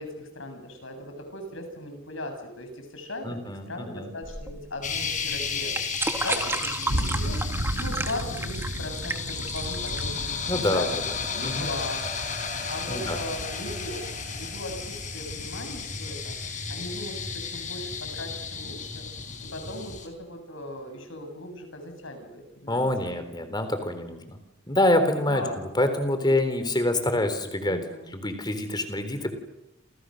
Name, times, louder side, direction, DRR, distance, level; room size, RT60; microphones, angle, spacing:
voice 1, 0.0-5.7 6.2-7.4 7.8-10.9 11.2-12.1 12.4-16.4 16.7-19.1 19.4-22.9 25.1-25.6 27.7-28.2, left 1 dB, 65° left, 5 dB, 7.8 m, -38 dB
voice 2, 3.2-4.1 10.5-10.9 11.4-11.7 12.9-13.2 22.7-24.4 24.7-27.8 28.1-29.3, left 1 dB, 20° left, 9 dB, 3.8 m, -26 dB
sound 1, 4.2-11.3, right 2 dB, 10° right, 1.8 m, -33 dB
sound 2, 4.8-20.1, left 5 dB, 35° left, 4.9 m, -34 dB
sound 3, 6.9-16.0, equal, 70° right, 4.3 m, -35 dB
29.5 x 28.0 x 6.6 m, 0.86 s
head